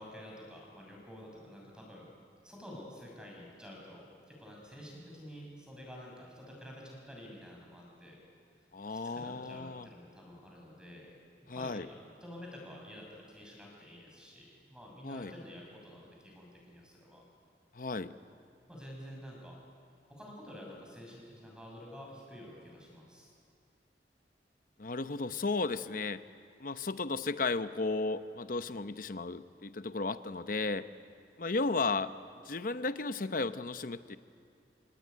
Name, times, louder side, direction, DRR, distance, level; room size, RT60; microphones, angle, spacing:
voice 1, 0.0-2.1 2.4-8.2 8.9-11.1 11.5-17.2 18.7-19.6 20.0-23.3, equal, 5° right, -1 dB, 6.7 m, -49 dB
voice 2, 8.7-9.9 11.5-11.9 15.0-15.3 17.7-18.1 24.8-26.2 26.6-30.9 31.4-32.1 32.4-34.2, left 3 dB, 50° left, 11 dB, 0.8 m, -34 dB
27.5 x 19.5 x 9.4 m, 2.3 s
head